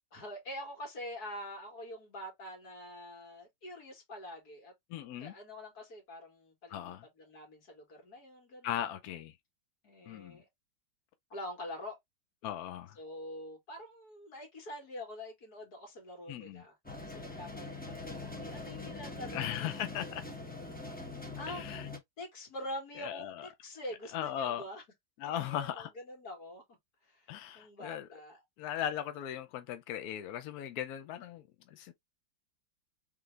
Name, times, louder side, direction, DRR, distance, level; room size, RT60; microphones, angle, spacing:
voice 1, 0.1-4.7 5.2-8.9 9.8-10.5 11.3-12.0 13.0-19.8 21.4-21.6 22.2-24.8 25.2-26.6 27.0-28.4, left 1 dB, 55° left, 2.5 m, -45 dB
voice 2, 4.9-5.3 6.7-7.0 8.6-9.3 10.1-10.4 12.4-13.0 16.3-16.6 19.3-20.2 21.5-21.9 23.0-23.5 24.1-24.6 25.2-25.9 27.3-28.1 28.6-31.9, left 11 dB, 70° left, 0.9 m, -38 dB
sound 1, 16.8-22.0, left 3 dB, 10° left, 0.4 m, -43 dB
3.8 x 3.5 x 3.2 m
omnidirectional pair, 2.1 m